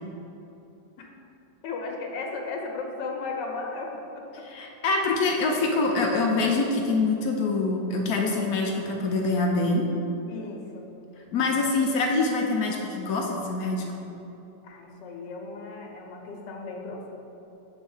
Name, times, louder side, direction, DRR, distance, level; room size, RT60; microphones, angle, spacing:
voice 1, 1.6-4.4 10.3-10.9 14.6-17.1, left 3 dB, 80° left, 1 dB, 1.5 m, -35 dB
voice 2, 4.4-9.9 11.3-14.0, left 3 dB, 65° left, 0 dB, 1.1 m, -25 dB
8.0 x 3.2 x 5.4 m, 2.9 s
omnidirectional pair, 1.9 m